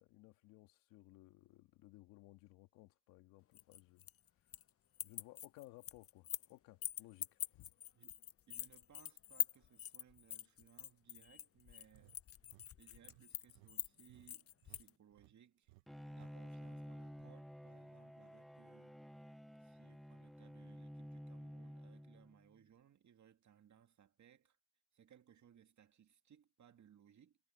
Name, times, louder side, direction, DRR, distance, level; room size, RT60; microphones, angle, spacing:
voice 1, 0.0-4.1 5.0-7.7, left 18 dB, 85° left, 2.2 m, -60 dB
sound 1, 3.5-4.7 4.9-6.5 6.8-14.9, left 11 dB, 45° left, 0.6 m, -44 dB
voice 2, 8.5-12.2 12.5-15.7 16.2-19.0 19.6-24.6 24.9-27.4, right 9 dB, 60° right, 2.4 m, -66 dB
sound 2, 11.9-14.8 15.1-15.4 15.7-15.8 16.1-16.3 16.6-17.3, right 22 dB, 90° right, 1.1 m, -65 dB
Bowed string instrument, 15.9-22.5, equal, ahead, 0.5 m, -52 dB
supercardioid pair, 55°, 33 cm